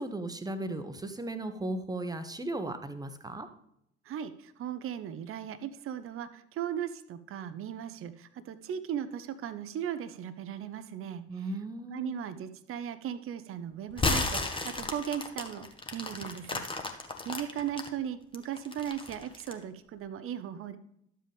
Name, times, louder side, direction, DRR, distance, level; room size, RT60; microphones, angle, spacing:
voice 1, 0.0-3.5 11.3-12.1, right 2 dB, 10° right, 9 dB, 1.0 m, -36 dB
voice 2, 4.1-11.2 11.9-15.7 15.9-16.6 17.2-20.8, right 9 dB, 40° right, 12 dB, 0.8 m, -37 dB
sound 1, 13.9-17.9 18.3-19.6, left 3 dB, 15° left, 1.2 m, -33 dB
12.0 x 7.5 x 3.5 m, 0.74 s
figure-of-eight pair, 55°, 34 cm